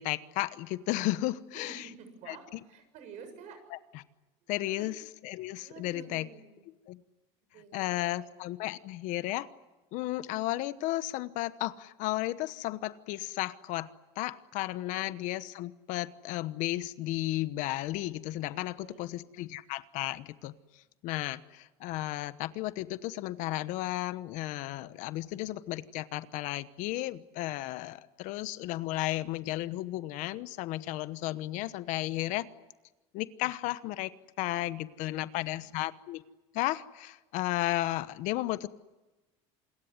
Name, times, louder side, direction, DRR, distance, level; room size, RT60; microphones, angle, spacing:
voice 1, 0.0-1.9 2.3-2.4 3.7-4.0 4.5-4.9 5.2-6.3 6.9-7.0 7.7-9.5 9.9-13.9 14.2-20.5 21.0-32.5 33.1-34.1 34.4-36.2 36.5-38.7, left 16 dB, 60° left, 15 dB, 1.1 m, -34 dB
voice 2, 1.5-3.6 4.4-4.9 5.6-6.6 7.5-8.2 14.8-15.2 18.8-19.1 20.7-20.8 34.8-35.1 35.4-35.9, right 5 dB, 55° right, 8 dB, 7.0 m, -51 dB
27.5 x 21.5 x 9.6 m, 1.1 s
cardioid pair, 140°, 14 cm